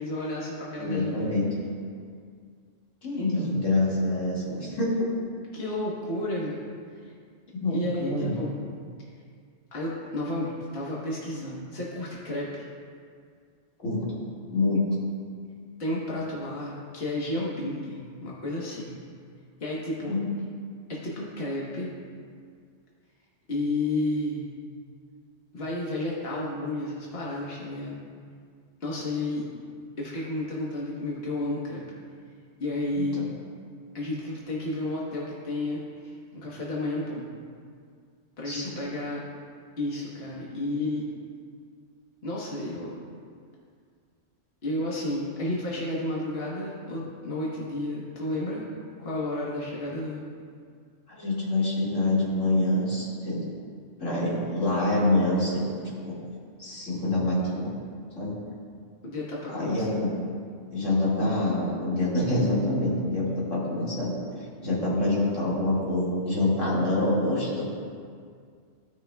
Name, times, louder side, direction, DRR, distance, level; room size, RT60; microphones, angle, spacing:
voice 1, 0.0-1.3 3.2-3.5 5.5-6.6 7.7-8.6 9.7-12.6 15.8-19.0 19.6-20.1 20.9-21.9 23.5-24.5 25.5-28.0 28.8-29.5 30.0-31.8 32.6-33.2 33.9-37.3 38.4-39.2 39.8-41.1 42.2-42.9 44.6-48.7 49.0-50.3 59.0-60.0, left 1 dB, 55° left, -5 dB, 1.4 m, -32 dB
voice 2, 0.8-1.4 3.0-5.1 7.5-8.3 13.8-14.0 14.5-14.8 20.0-20.3 32.9-33.1 38.4-38.7 51.1-53.4 54.0-55.8 56.0-56.2 56.6-57.7 58.2-58.4 59.5-60.2 60.7-64.1 64.6-67.6, left 2 dB, 90° left, -8 dB, 2.5 m, -26 dB
15.0 x 5.5 x 2.3 m, 2.1 s
omnidirectional pair, 1.3 m